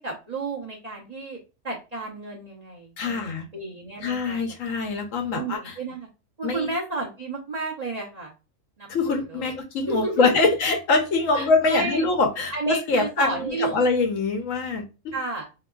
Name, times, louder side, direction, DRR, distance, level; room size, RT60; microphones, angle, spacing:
voice 1, 0.0-1.4 1.6-4.4 4.7-4.8 5.3-6.1 6.4-8.3 8.8-9.5 9.9-10.3 11.3-12.1 12.5-13.9 15.1-15.4, right 3 dB, 40° right, -4 dB, 0.7 m, -32 dB
voice 2, 3.0-3.4 4.0-5.7 6.4-6.7 8.9-15.1, left 3 dB, 70° left, 5 dB, 1.1 m, -24 dB
3.5 x 2.9 x 2.3 m, 0.29 s
omnidirectional pair, 1.4 m